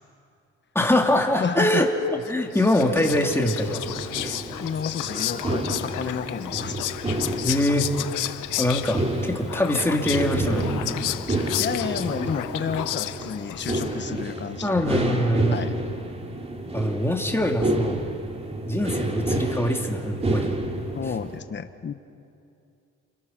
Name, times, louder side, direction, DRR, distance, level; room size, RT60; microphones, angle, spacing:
voice 1, 0.7-1.9 2.3-3.8 4.2-4.4 7.4-7.9 8.2-10.7 14.6-15.7 16.7-18.0 18.7-20.6, left 1 dB, 10° left, 1 dB, 3.2 m, -23 dB
voice 2, 1.4-1.9 4.6-6.8 11.6-14.9 15.5-15.8 20.9-21.9, left 6 dB, 35° left, 9 dB, 1.2 m, -30 dB
Whispering, 2.2-14.2, left 14 dB, 90° left, 0.8 m, -32 dB
sound 1, 3.0-21.4, right 1 dB, 20° right, 2.4 m, -30 dB
29.5 x 26.5 x 6.1 m, 2.6 s
cardioid pair, 90°, 30 cm